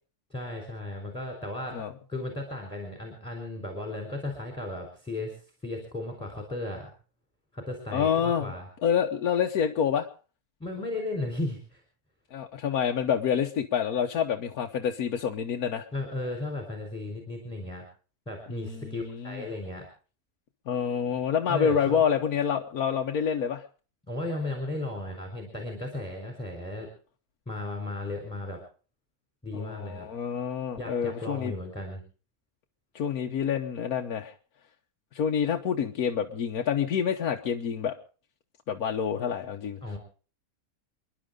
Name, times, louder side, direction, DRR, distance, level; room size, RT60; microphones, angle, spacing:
voice 1, 0.3-1.8 2.1-6.9 7.5-8.7 10.6-11.8 15.9-17.9 18.3-19.9 21.5-22.0 24.1-26.9 27.5-28.6 29.4-30.1 30.8-32.0 39.8-40.0, left 2 dB, 5° left, 2 dB, 3.8 m, -35 dB
voice 2, 7.9-8.5 8.8-10.1 12.3-15.9 18.5-19.4 20.7-23.6 29.5-31.5 32.9-34.3 35.1-37.9 38.7-39.8, left 7 dB, 75° left, 1 dB, 1.5 m, -27 dB
29.0 x 11.0 x 3.7 m, 0.39 s
omnidirectional pair, 1.6 m